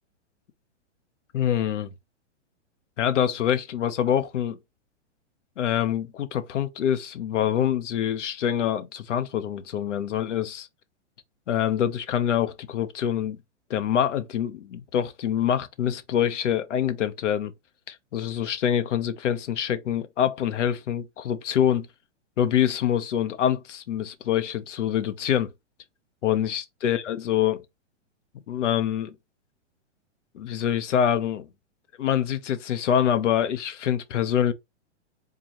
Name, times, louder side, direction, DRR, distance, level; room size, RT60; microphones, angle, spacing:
voice 1, 1.3-1.9 3.0-4.6 5.6-10.7 11.5-13.4 13.7-17.5 17.9-21.9 22.4-25.5 26.2-27.6 28.5-29.1 30.3-31.5 32.0-34.5, left 10 dB, 75° left, 1.0 m, -25 dB
3.9 x 2.9 x 3.0 m
hypercardioid pair, 160°, 36 cm